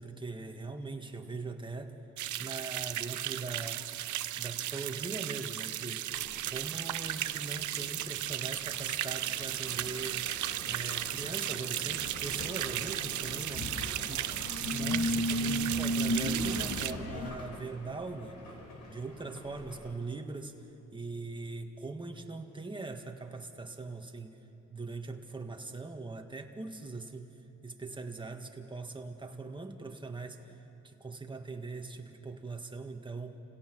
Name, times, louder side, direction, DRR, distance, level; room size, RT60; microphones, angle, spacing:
voice 1, 0.0-2.0 2.4-3.8 4.4-6.0 6.5-10.3 10.7-13.8 14.0-14.3 14.7-18.4 18.9-20.6 20.9-24.4 24.7-27.4 27.6-30.5 30.8-33.4, right 3 dB, 15° right, 4 dB, 1.8 m, -41 dB
sound 1, 2.2-16.9, right 13 dB, 75° right, 0.7 m, -35 dB
sound 2, 6.1-20.0, left 1 dB, 80° left, 4.2 m, -50 dB
sound 3, 11.9-17.3, equal, 55° left, 2.2 m, -34 dB
29.0 x 17.0 x 6.2 m, 2.9 s
cardioid pair, 90°, 30 cm